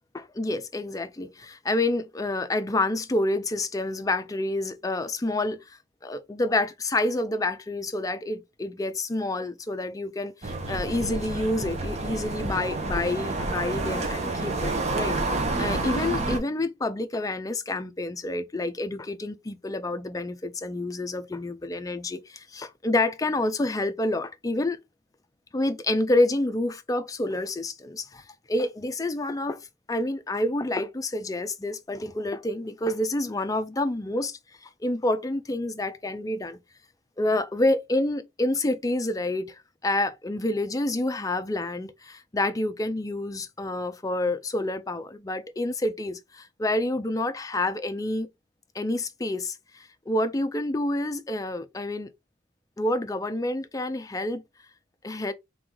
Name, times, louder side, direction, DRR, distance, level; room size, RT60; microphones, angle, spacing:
voice 1, 0.1-24.8 25.5-29.6 29.9-36.6 37.2-39.6 39.8-48.3 48.7-52.1 52.8-54.4 55.0-55.3, left 2 dB, 20° left, 0.4 m, -28 dB
sound 1, 10.4-16.4, right 2 dB, 35° right, 1.0 m, -29 dB
3.4 x 3.1 x 3.7 m
head